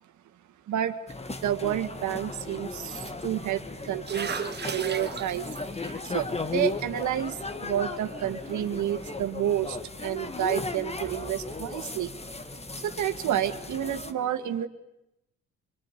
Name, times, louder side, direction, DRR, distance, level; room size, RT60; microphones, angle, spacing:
sound 1, 1.1-14.1, left 3 dB, 20° left, 1.7 m, -36 dB
voice 1, 1.4-5.6 6.0-12.1 12.8-14.7, right 11 dB, 75° right, 7 dB, 2.0 m, -30 dB
sound 2, 3.6-9.2, right 6 dB, 35° right, 1.4 m, -40 dB
26.0 x 21.5 x 10.0 m, 0.87 s
cardioid pair, 90°, 30 cm